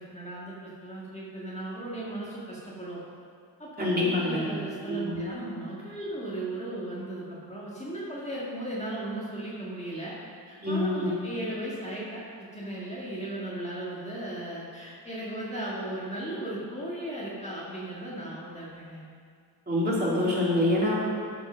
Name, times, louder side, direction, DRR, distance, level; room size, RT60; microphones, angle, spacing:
voice 1, 0.0-3.0 3.6-10.1 10.5-19.0, right 1 dB, 15° left, -7 dB, 1.8 m, -36 dB
voice 2, 3.8-4.5 4.9-5.2 10.6-11.1 19.7-20.9, left 1 dB, 20° right, -7 dB, 2.8 m, -26 dB
13.5 x 5.2 x 5.6 m, 2.2 s
wide cardioid pair, 130°, 42 cm